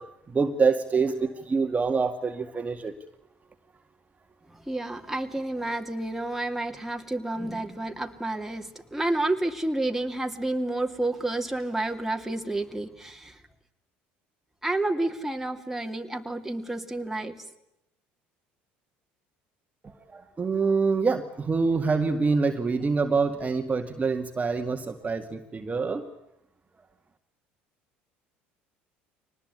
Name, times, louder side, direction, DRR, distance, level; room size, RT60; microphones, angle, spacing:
voice 1, 0.0-2.9 19.8-26.1, right 4 dB, 25° right, 5 dB, 2.1 m, -26 dB
voice 2, 4.5-13.4 14.6-17.4, right 2 dB, 5° right, 4 dB, 2.8 m, -30 dB
24.0 x 19.5 x 9.7 m, 0.84 s
hypercardioid pair, 70°, 6 cm